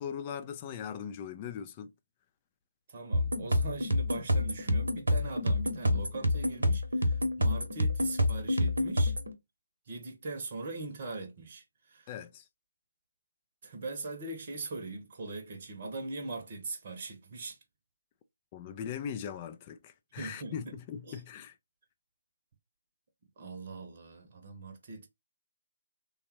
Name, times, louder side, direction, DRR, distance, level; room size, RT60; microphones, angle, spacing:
voice 1, 0.0-1.9 12.1-12.5 18.5-21.6, left 8 dB, 25° left, 0.4 m, -40 dB
voice 2, 2.9-9.1 9.9-12.1 13.6-17.6 20.1-20.5 21.1-21.2 23.4-25.1, right 3 dB, 35° right, 0.8 m, -41 dB
sound 1, 3.1-9.3, left 1 dB, 65° right, 0.9 m, -28 dB
3.4 x 2.3 x 2.9 m
figure-of-eight pair, 145°, 0 cm